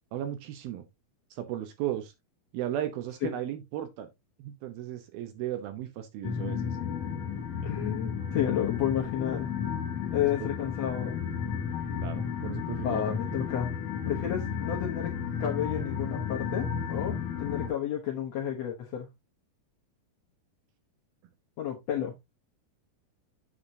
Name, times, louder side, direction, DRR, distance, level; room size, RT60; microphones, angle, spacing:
voice 1, 0.1-0.8 1.4-2.1 2.5-4.1 4.4-6.7 10.4-10.5 12.0-13.2, right 12 dB, 70° right, 2.7 m, -35 dB
sound 1, 6.2-17.7, left 7 dB, 50° left, 2.9 m, -33 dB
voice 2, 7.6-9.5 10.1-11.2 12.8-13.8 14.1-15.1 15.4-19.1 21.6-22.1, left 10 dB, 85° left, 1.4 m, -31 dB
7.9 x 7.4 x 2.7 m
omnidirectional pair, 4.8 m